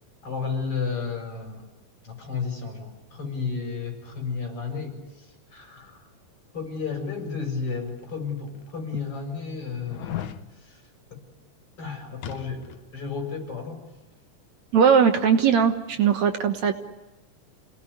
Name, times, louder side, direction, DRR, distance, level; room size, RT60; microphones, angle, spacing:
voice 1, 0.2-1.6 2.0-5.3 5.5-6.0 6.5-10.4 10.6-10.8 11.1-11.2 11.8-12.6 12.9-13.8, left 5 dB, 45° left, 3 dB, 7.5 m, -32 dB
sound 1, 7.9-8.0 8.7-8.8 9.9-10.4 12.2-12.9 13.2-13.3, left 12 dB, 65° left, 2.4 m, -35 dB
voice 2, 14.7-16.7, right 7 dB, 65° right, 6 dB, 2.4 m, -19 dB
29.0 x 19.0 x 9.9 m, 1.1 s
omnidirectional pair, 3.7 m